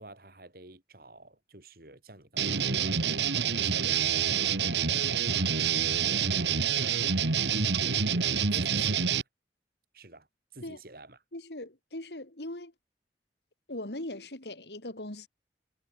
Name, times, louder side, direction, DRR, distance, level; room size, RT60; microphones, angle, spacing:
voice 1, 0.0-7.0 7.9-9.3 9.9-10.3 10.5-11.2, right 2 dB, 55° right, 5.0 m, -50 dB
sound 1, 2.4-9.2, right 7 dB, 80° right, 1.5 m, -27 dB
voice 2, 11.3-12.7 13.7-15.3, left 1 dB, 75° left, 3.4 m, -40 dB
head